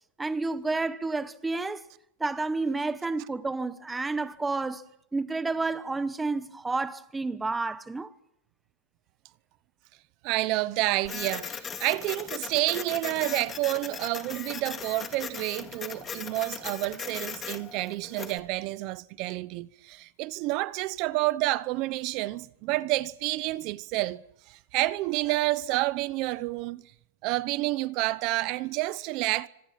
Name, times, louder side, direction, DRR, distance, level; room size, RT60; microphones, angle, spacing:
voice 1, 0.2-1.8 2.2-4.8 5.1-8.1, right 3 dB, 5° right, 1.0 m, -30 dB
voice 2, 10.2-26.8 27.2-29.5, right 19 dB, 40° right, 0.8 m, -29 dB
Printer, 11.0-18.4, left 6 dB, 15° left, 2.1 m, -38 dB
26.0 x 26.0 x 5.9 m
supercardioid pair, 160°, 0 cm